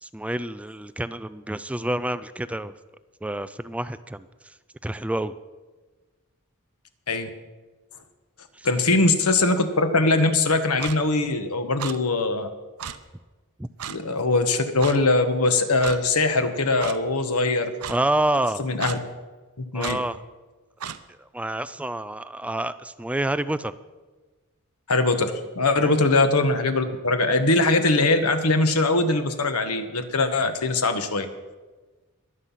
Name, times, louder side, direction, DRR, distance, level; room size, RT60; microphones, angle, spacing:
voice 1, 0.0-2.7 3.2-4.3 4.8-5.3 8.5-8.7 13.6-13.7 17.9-18.6 19.7-20.2 21.3-23.7 25.8-26.0, right 1 dB, 5° right, 13 dB, 0.3 m, -28 dB
voice 2, 8.6-12.5 13.9-17.7 18.6-19.0 19.6-20.0 24.9-31.3, left 2 dB, 85° left, 8 dB, 1.4 m, -22 dB
Clock, 10.8-11.0 11.8-12.0 12.8-13.0 13.8-14.0 14.8-15.0 15.8-16.0 16.8-17.0 17.8-18.0 18.8-19.0 19.8-20.0 20.8-21.0, right 8 dB, 90° right, 0.8 m, -33 dB
22.5 x 7.8 x 5.7 m, 1.3 s
head